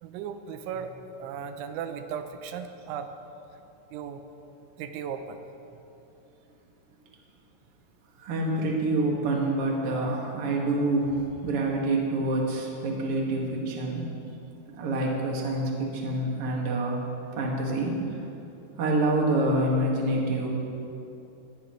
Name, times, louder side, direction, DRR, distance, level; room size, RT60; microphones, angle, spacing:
voice 1, 0.0-3.1 3.9-4.2 4.8-5.4, right 7 dB, 90° right, 8 dB, 3.2 m, -36 dB
voice 2, 8.2-14.1 14.7-17.1 17.4-18.0 18.8-20.5, right 2 dB, 45° right, -2 dB, 2.0 m, -27 dB
19.5 x 16.0 x 3.2 m, 2.8 s
omnidirectional pair, 5.2 m